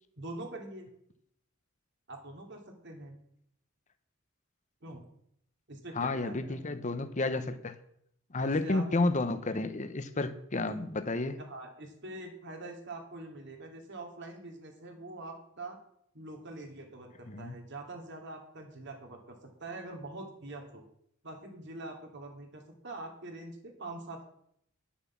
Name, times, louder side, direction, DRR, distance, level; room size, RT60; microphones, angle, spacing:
voice 1, 0.2-0.9 2.1-3.2 4.8-5.0 5.7-6.6 8.4-8.8 10.7-10.8 11.4-15.8 16.1-20.8 21.2-24.3, right 2 dB, 60° right, 3 dB, 2.5 m, -44 dB
voice 2, 6.0-7.7 8.3-11.4 17.2-17.6, left 2 dB, 35° left, 10 dB, 0.8 m, -31 dB
10.5 x 7.1 x 7.3 m, 0.70 s
head